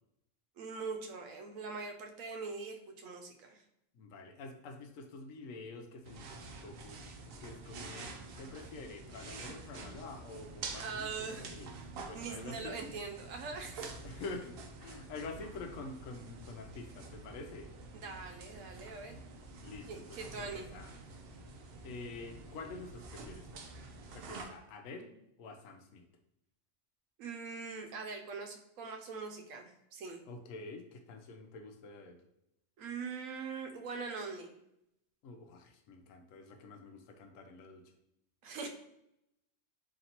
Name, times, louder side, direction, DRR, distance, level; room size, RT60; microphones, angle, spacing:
voice 1, 0.6-3.6 10.8-11.5 12.1-13.9 17.9-19.2 19.9-20.7 27.2-30.2 32.8-34.5 38.4-38.7, right 4 dB, 80° right, 4 dB, 1.0 m, -42 dB
voice 2, 3.9-7.0 7.4-11.1 11.4-11.7 12.0-12.8 14.0-14.5 14.8-17.7 19.6-21.0 21.8-23.5 24.1-25.1 25.4-26.0 30.3-32.2 35.2-37.8, left 3 dB, 85° left, 5 dB, 1.0 m, -47 dB
sound 1, 6.0-24.4, right 3 dB, 60° right, 0.7 m, -48 dB
4.1 x 2.9 x 2.8 m, 0.81 s
omnidirectional pair, 1.3 m